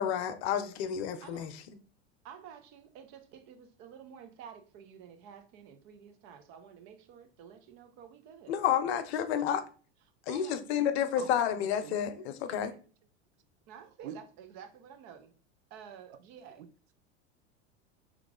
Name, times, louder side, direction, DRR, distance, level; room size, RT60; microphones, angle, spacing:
voice 1, 0.0-1.8 8.5-9.6 10.3-12.7, left 9 dB, 70° left, 0.7 m, -30 dB
voice 2, 2.2-8.6 10.3-10.6 11.3-11.4 13.7-15.3 15.7-16.6, right 8 dB, 55° right, 0.9 m, -51 dB
voice 3, 11.2-12.0 12.7-12.8 14.0-14.2 16.1-16.7, right 9 dB, 80° right, 0.6 m, -46 dB
3.6 x 3.1 x 3.7 m
hypercardioid pair, 100°, 34 cm